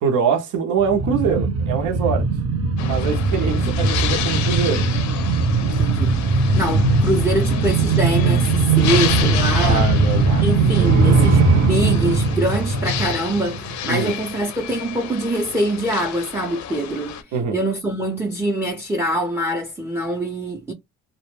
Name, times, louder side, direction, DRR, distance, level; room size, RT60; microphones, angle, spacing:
voice 1, 0.0-2.3 2.8-4.8 9.6-10.5 10.8-11.1 13.9-14.1 17.3-17.6, right 6 dB, 85° right, 0.7 m, -23 dB
sound 1, 0.8-14.0 14.4-14.5, right 3 dB, 55° right, 0.7 m, -19 dB
sound 2, 2.8-17.2, left 10 dB, 70° left, 0.5 m, -31 dB
voice 2, 5.6-9.9 10.4-17.2 17.5-20.7, right 1 dB, 10° right, 0.5 m, -24 dB
2.2 x 2.0 x 3.1 m
cardioid pair, 90°, 30 cm